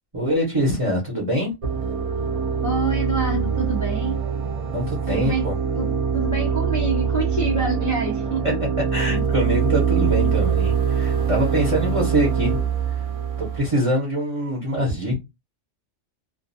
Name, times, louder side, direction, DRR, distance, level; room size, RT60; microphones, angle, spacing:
voice 1, 0.1-1.5 4.7-5.5 8.9-12.6 12.9-13.1 13.4-15.1, equal, 30° right, 0.8 m, -24 dB
sound 1, 1.6-13.6, right 7 dB, 60° right, 0.3 m, -23 dB
voice 2, 2.6-4.2 5.1-5.5 5.8-5.9 6.1-8.6, right 2 dB, 20° left, 0.5 m, -26 dB
2.4 x 2.2 x 2.6 m
omnidirectional pair, 1.3 m